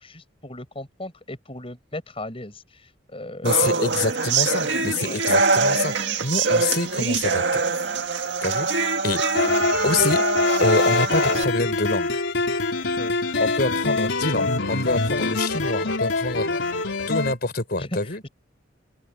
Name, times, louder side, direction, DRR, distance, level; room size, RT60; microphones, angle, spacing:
voice 1, 0.0-3.9 5.0-5.2 13.0-13.1 13.6-13.8 17.8-18.3, left 1 dB, 30° left, 5.8 m, -37 dB
voice 2, 3.4-7.6 8.4-9.2 9.8-10.2 10.6-12.1 13.4-16.7 17.1-18.2, left 3 dB, 55° left, 3.9 m, -26 dB
sound 1, 3.5-11.4, right 3 dB, 70° right, 1.9 m, -23 dB
sound 2, 9.4-17.4, left 3 dB, 80° left, 4.0 m, -24 dB
open air
head